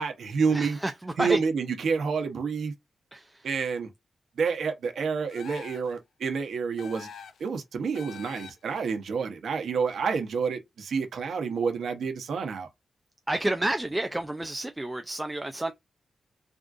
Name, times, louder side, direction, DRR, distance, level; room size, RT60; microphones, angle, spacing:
voice 1, 0.0-0.8 1.2-2.7 3.4-3.9 4.4-7.1 7.4-12.7, right 5 dB, 80° right, 0.8 m, -29 dB
voice 2, 0.5-1.4 3.1-3.5 13.3-15.7, right 1 dB, 10° right, 0.3 m, -30 dB
sound 1, 5.3-6.0 6.8-7.5 7.9-8.8, left 6 dB, 80° left, 0.5 m, -45 dB
3.6 x 2.4 x 2.4 m
wide cardioid pair, 160°, 0 cm